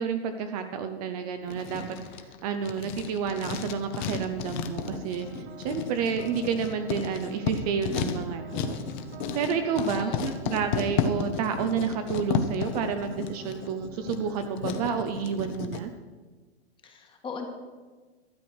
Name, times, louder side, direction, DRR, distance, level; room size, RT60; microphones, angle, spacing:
voice 1, 0.0-1.8 2.4-8.8 9.3-15.9, right 6 dB, 35° right, 7 dB, 0.7 m, -30 dB
Writing, 1.5-15.8, left 6 dB, 45° left, 1.1 m, -33 dB
sound 1, 4.8-15.1, right 10 dB, 80° right, 0.9 m, -47 dB
voice 2, 9.8-10.2 10.5-10.6 16.8-17.5, left 5 dB, 15° left, 3 dB, 1.5 m, -38 dB
12.5 x 8.1 x 6.1 m, 1.3 s
hypercardioid pair, 150°, 33 cm